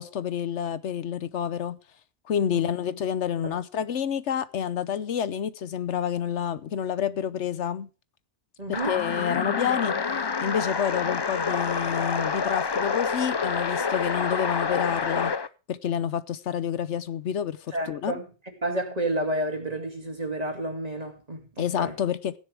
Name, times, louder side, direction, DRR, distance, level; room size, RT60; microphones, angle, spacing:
voice 1, 0.0-1.8 2.3-7.9 8.7-10.0 10.4-15.3 15.7-18.1 21.6-22.3, left 8 dB, 80° left, 1.1 m, -28 dB
voice 2, 8.6-9.0 17.7-18.3 18.6-22.0, right 1 dB, 35° right, 2.6 m, -30 dB
sound 1, 8.7-15.5, left 5 dB, 35° left, 0.4 m, -27 dB
16.0 x 10.5 x 3.4 m
omnidirectional pair, 1.2 m